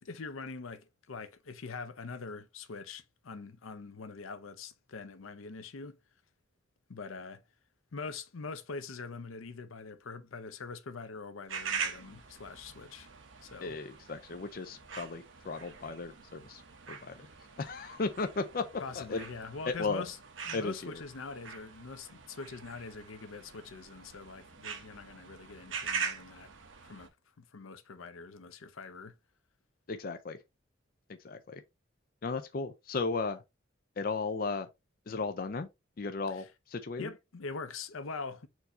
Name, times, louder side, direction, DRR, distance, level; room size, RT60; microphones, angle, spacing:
voice 1, 0.0-6.0 6.9-7.4 7.9-13.1 13.4-13.8 18.8-20.2 20.4-26.5 26.8-27.1 27.4-29.1 37.0-38.5, left 4 dB, 90° left, 0.6 m, -43 dB
sound 1, 11.5-27.1, right 6 dB, 70° right, 0.9 m, -43 dB
voice 2, 13.6-16.6 16.9-17.3 17.6-19.2 19.7-20.0 20.5-21.0 29.9-30.4 31.1-31.6 32.2-33.4 34.0-34.7 35.1-35.7 36.0-37.1, left 4 dB, 45° left, 0.4 m, -35 dB
4.5 x 2.7 x 4.2 m
head